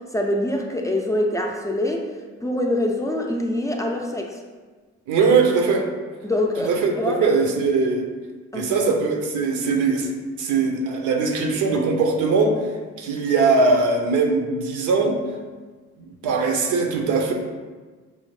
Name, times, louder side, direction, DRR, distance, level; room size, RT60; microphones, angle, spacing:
voice 1, 0.1-2.1 2.4-4.4 6.2-7.3 8.5-8.8, left 1 dB, 10° left, 1 dB, 0.4 m, -24 dB
voice 2, 5.1-5.9 6.7-8.0 8.5-10.1 10.4-12.6 13.0-15.2 16.0-17.3, right 4 dB, 85° right, 2 dB, 0.7 m, -20 dB
5.5 x 2.1 x 3.1 m, 1.4 s
cardioid pair, 90°, 30 cm